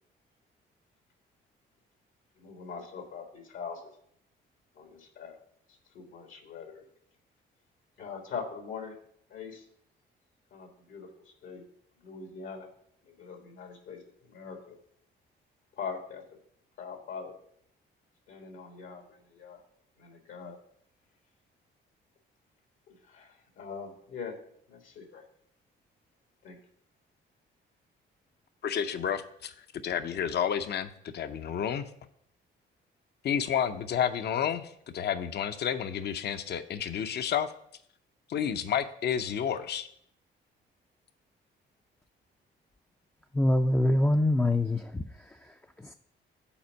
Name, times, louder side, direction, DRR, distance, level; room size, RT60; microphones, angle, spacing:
voice 1, 2.4-3.9 4.7-5.4 5.7-6.8 8.0-9.0 9.3-9.6 10.5-11.6 12.0-12.7 13.0-14.8 15.8-16.2 16.8-17.3 18.3-19.6 20.0-20.6 22.9-24.4 24.7-25.2 26.4-26.6, left 5 dB, 80° left, 4 dB, 1.6 m, -42 dB
voice 2, 28.6-29.5 29.8-31.9 33.2-37.5 38.3-39.9, left 8 dB, 55° left, 10 dB, 0.6 m, -30 dB
voice 3, 43.3-45.9, left 1 dB, 10° left, 4 dB, 0.4 m, -26 dB
7.0 x 4.3 x 6.3 m, 0.68 s
cardioid pair, 90°, 20 cm